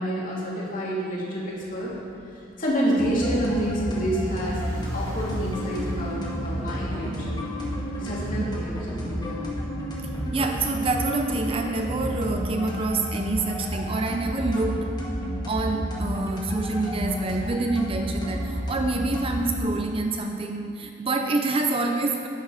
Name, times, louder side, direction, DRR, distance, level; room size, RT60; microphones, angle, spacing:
voice 1, 0.0-1.9 2.6-4.6 4.9-7.4 8.0-9.4, right 1 dB, 45° left, -5 dB, 2.8 m, -28 dB
sound 1, 1.6-9.8, equal, 85° right, 3.3 m, -43 dB
sound 2, 3.0-19.6, equal, 20° left, 1.5 m, -31 dB
sound 3, 5.6-12.1, equal, 55° right, 2.2 m, -40 dB
voice 2, 10.3-15.0 15.5-22.3, right 3 dB, 30° right, 4 dB, 0.6 m, -27 dB
11.0 x 10.0 x 4.9 m, 2.5 s
head